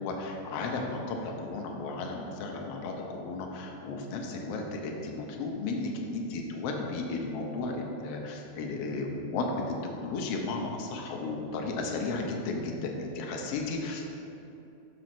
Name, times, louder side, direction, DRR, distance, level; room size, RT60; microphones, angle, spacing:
voice 1, 0.0-14.2, left 3 dB, 90° left, 1 dB, 1.3 m, -34 dB
6.1 x 4.9 x 5.9 m, 2.8 s
omnidirectional pair, 3.7 m